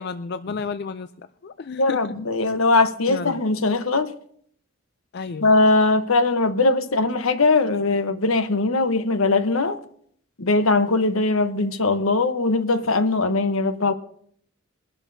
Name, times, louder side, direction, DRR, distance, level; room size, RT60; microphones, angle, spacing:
voice 1, 0.0-2.0 3.1-3.4 5.1-5.5, left 4 dB, 50° left, 0.4 m, -32 dB
voice 2, 1.8-4.1 5.4-9.8 10.4-13.9, left 3 dB, 75° left, 1.0 m, -20 dB
22.5 x 11.5 x 2.7 m
head